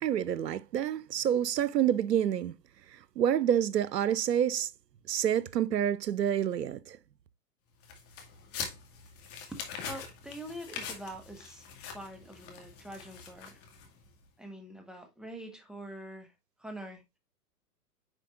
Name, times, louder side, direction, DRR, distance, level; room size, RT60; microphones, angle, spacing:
voice 1, 0.0-2.6 3.2-4.7 5.1-7.0, right 10 dB, 90° right, 0.7 m, -28 dB
sound 1, 7.8-14.1, left 6 dB, 30° left, 2.1 m, -43 dB
voice 2, 9.5-13.6 14.4-16.3 16.6-17.0, right 1 dB, ahead, 1.2 m, -45 dB
9.9 x 4.4 x 2.4 m
hypercardioid pair, 125°, 48 cm